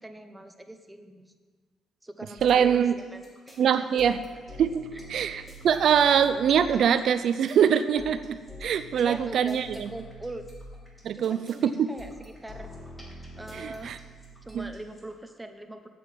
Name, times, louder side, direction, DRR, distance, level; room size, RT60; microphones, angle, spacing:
voice 1, 0.0-1.3 2.0-3.6 4.9-5.1 9.0-10.4 11.1-12.7 13.4-13.9 14.4-15.9, right 1 dB, 10° right, 7 dB, 1.1 m, -41 dB
sound 1, 2.4-15.1, right 1 dB, 15° left, 3.2 m, -46 dB
voice 2, 2.4-2.9 3.6-4.2 4.6-9.9 11.0-11.9 13.5-14.0 14.5-14.7, right 8 dB, 65° right, 11 dB, 0.5 m, -23 dB
8.5 x 7.8 x 7.5 m, 1.5 s
cardioid pair, 90°, 0 cm